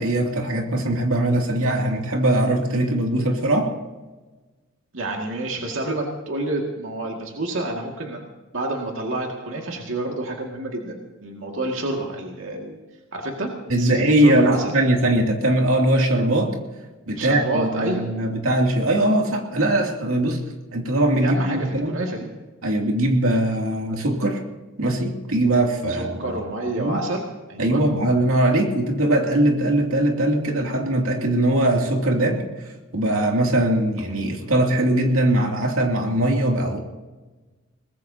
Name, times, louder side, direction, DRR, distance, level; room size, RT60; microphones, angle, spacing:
voice 1, 0.0-3.7 13.7-16.5 17.1-20.4 20.7-21.9 22.6-24.4 24.8-26.4 26.7-27.0 27.6-32.4 32.9-36.8, right 1 dB, 90° right, 1 dB, 2.6 m, -21 dB
voice 2, 4.9-8.3 8.5-12.8 13.1-13.5 13.8-14.7 17.2-18.1 21.2-22.3 25.9-27.2 27.5-27.8, right 2 dB, 70° right, 0 dB, 2.2 m, -28 dB
22.5 x 20.0 x 2.8 m, 1.2 s
head